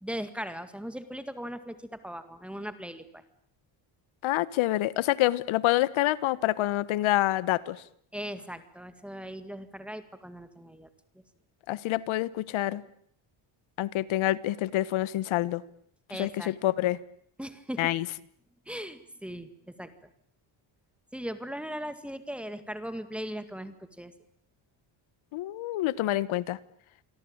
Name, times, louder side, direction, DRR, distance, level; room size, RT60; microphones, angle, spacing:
voice 1, 0.0-3.2 8.1-10.9 16.1-16.5 17.4-17.9 18.7-19.9 21.1-24.1, equal, ahead, 10 dB, 1.9 m, -38 dB
voice 2, 4.2-7.8 11.7-12.8 13.8-15.6 16.1-17.0 17.8-18.1 25.3-26.6, left 15 dB, 75° left, 18 dB, 1.4 m, -27 dB
28.5 x 23.0 x 8.8 m, 0.64 s
cardioid pair, 175°, 48 cm